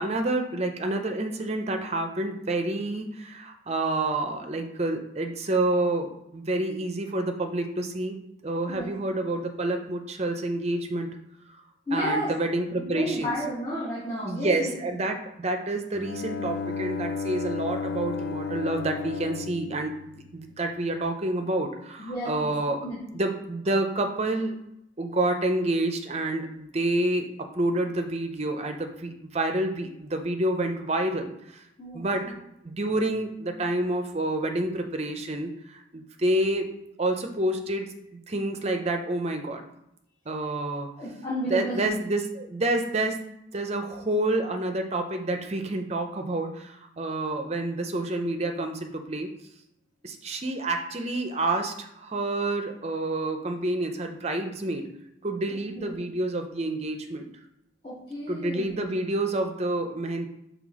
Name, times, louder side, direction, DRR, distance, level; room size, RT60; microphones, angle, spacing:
voice 1, 0.0-8.2 8.4-11.1 11.9-13.3 14.2-19.9 20.3-22.9 23.1-24.6 25.0-27.3 27.5-31.6 31.9-32.3 32.6-39.6 40.3-40.9 41.5-43.2 43.5-49.3 50.0-54.9 55.2-57.3 58.3-60.3, right 2 dB, 30° right, 5 dB, 0.5 m, -28 dB
voice 2, 8.7-9.1 11.9-12.3 12.8-14.7 22.0-22.5 22.8-23.2 31.8-32.3 41.0-41.9 55.7-56.0 57.8-58.8, equal, 25° left, -10 dB, 1.5 m, -32 dB
Bowed string instrument, 15.9-20.8, left 5 dB, 50° left, 0.4 m, -33 dB
5.8 x 3.3 x 4.8 m, 0.82 s
head